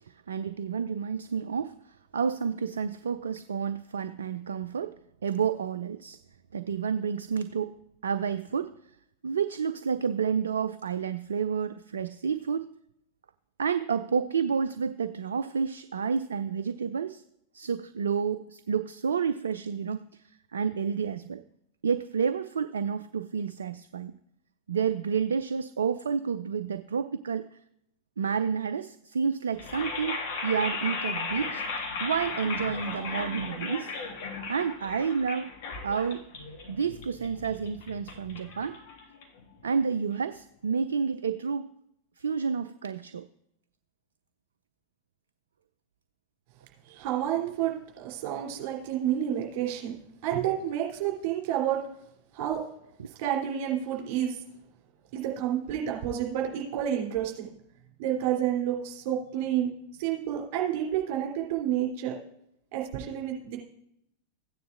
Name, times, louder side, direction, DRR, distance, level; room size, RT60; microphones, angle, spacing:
voice 1, 0.1-1.8 2.1-6.2 6.5-7.8 8.0-8.8 9.2-12.7 13.6-17.2 17.5-20.1 20.5-21.4 21.8-24.1 24.7-27.5 28.2-31.6 32.0-33.9 34.5-35.5 35.8-36.3 36.7-38.8 39.6-41.7 42.2-43.3 53.0-53.1, right 6 dB, 65° right, 12 dB, 0.3 m, -30 dB
sound 1, 29.5-39.6, left 4 dB, 50° left, 1.8 m, -36 dB
voice 2, 46.8-50.0 50.2-51.8 52.3-52.6 53.2-54.4 55.1-57.5 58.0-59.7 60.0-62.2 62.7-63.6, right 10 dB, 45° right, -1 dB, 3.1 m, -29 dB
15.0 x 9.4 x 2.5 m, 0.76 s
figure-of-eight pair, 90°, 0 cm